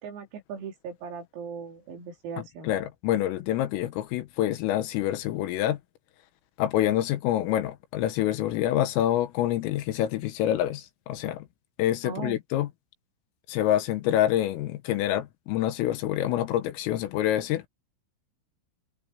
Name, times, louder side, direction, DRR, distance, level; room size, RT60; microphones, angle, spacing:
voice 1, 0.0-2.7 12.0-12.4, right 6 dB, 90° right, 7.3 m, -38 dB
voice 2, 2.4-5.8 6.6-11.5 11.8-12.7 13.5-17.6, left 12 dB, 80° left, 3.9 m, -27 dB
omnidirectional pair, 6.0 m